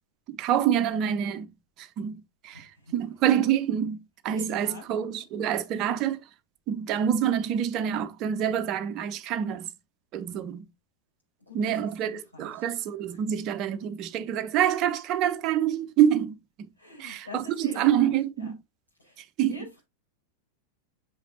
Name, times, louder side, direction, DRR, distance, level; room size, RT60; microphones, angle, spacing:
voice 1, 0.3-1.5 1.8-2.6 2.9-4.0 4.2-6.2 6.7-9.7 10.1-10.7 11.5-16.4 17.0-17.4 17.8-18.5 19.4-19.6, right 10 dB, 35° right, 0.7 m, -26 dB
voice 2, 2.5-2.9 4.4-4.8 5.5-5.6 11.4-12.7 13.1-13.2 16.8-18.5 19.0-19.8, left 2 dB, 90° left, 4.8 m, -46 dB
7.1 x 5.1 x 2.7 m
figure-of-eight pair, 90°, 0 cm